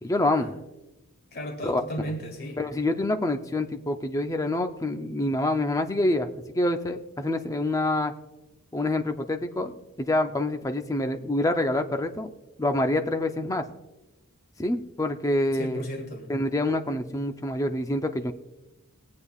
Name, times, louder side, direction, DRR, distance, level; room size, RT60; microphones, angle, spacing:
voice 1, 0.0-0.5 1.6-1.8 2.6-8.1 8.7-12.3 12.6-13.6 14.6-15.9 16.3-18.3, left 1 dB, 15° left, 6 dB, 0.6 m, -26 dB
voice 2, 1.3-2.6 15.5-16.3, equal, 45° left, 3 dB, 1.9 m, -35 dB
21.0 x 8.5 x 2.4 m, 1.0 s
head